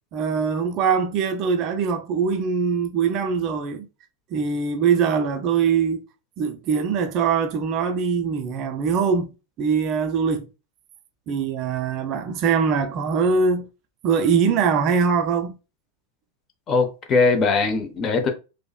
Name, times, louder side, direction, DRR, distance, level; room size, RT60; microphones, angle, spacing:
voice 1, 0.1-3.9 4.3-6.1 6.4-9.3 9.6-10.5 11.3-13.7 14.0-15.6, right 6 dB, 35° right, 0.4 m, -22 dB
voice 2, 16.7-18.3, left 4 dB, 30° left, 0.7 m, -20 dB
4.7 x 2.0 x 2.3 m
figure-of-eight pair, 90°, 0 cm